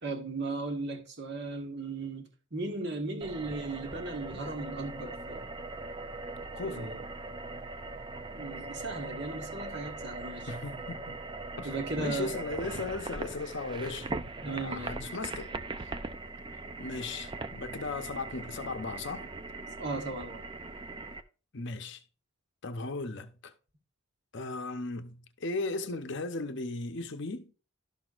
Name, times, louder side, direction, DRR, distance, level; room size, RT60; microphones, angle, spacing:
voice 1, 0.0-5.5 6.6-7.0 8.3-10.5 11.6-12.3 14.4-15.0 19.8-20.4, right 3 dB, 50° right, 1.5 m, -36 dB
sound 1, 3.2-21.2, right 3 dB, 20° right, 0.4 m, -40 dB
voice 2, 6.5-7.0 10.5-11.2 11.6-14.1 14.4-15.9 16.8-19.3 21.5-22.0 22.6-23.5 24.3-27.5, left 3 dB, 55° left, 0.7 m, -37 dB
12.0 x 6.1 x 2.4 m
head